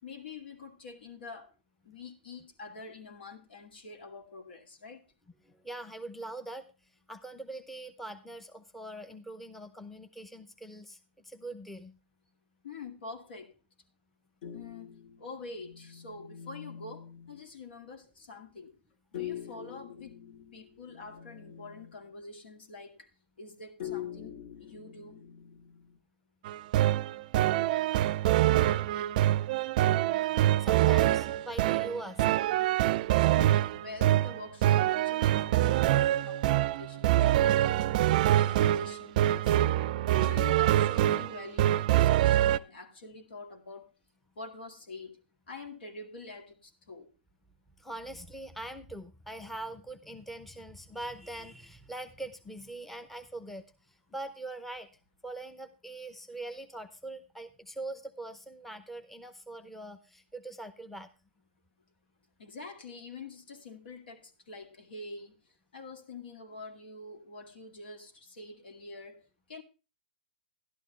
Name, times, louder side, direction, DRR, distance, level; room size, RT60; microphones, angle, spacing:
voice 1, 0.0-1.5 1.8-5.0 12.6-13.5 14.5-18.7 19.1-20.2 20.5-23.1 23.4-25.2 33.3-39.6 40.1-43.9 44.4-45.2 45.5-47.1 62.4-69.6, left 3 dB, 75° left, 2.2 m, -46 dB
voice 2, 5.5-6.7 7.1-12.0 30.1-32.2 47.8-54.9 55.2-61.1, right 2 dB, 5° left, 0.8 m, -42 dB
sound 1, 14.4-17.5 19.1-22.1 23.8-26.0, left 10 dB, 60° left, 2.0 m, -44 dB
sound 2, 26.4-42.6, right 13 dB, 50° right, 0.4 m, -25 dB
12.0 x 11.5 x 3.2 m
hypercardioid pair, 130°, 6 cm